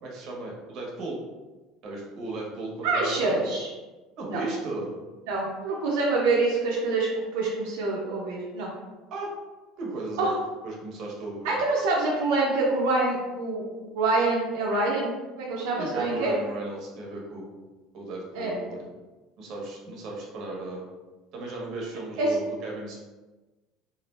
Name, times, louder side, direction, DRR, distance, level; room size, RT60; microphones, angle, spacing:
voice 1, 0.0-1.2 1.8-3.5 4.2-5.0 9.1-9.3 9.8-10.3 10.6-11.6 15.8-17.6 17.9-18.9 19.4-20.9 21.3-23.0, right 2 dB, 55° right, -2 dB, 0.8 m, -36 dB
voice 2, 2.8-3.7 4.3-4.4 5.3-8.7 10.2-10.3 11.4-16.3 18.3-18.5 22.2-22.3, right 3 dB, 85° right, -4 dB, 0.5 m, -26 dB
2.4 x 2.0 x 3.2 m, 1.2 s
supercardioid pair, 125°, 0 cm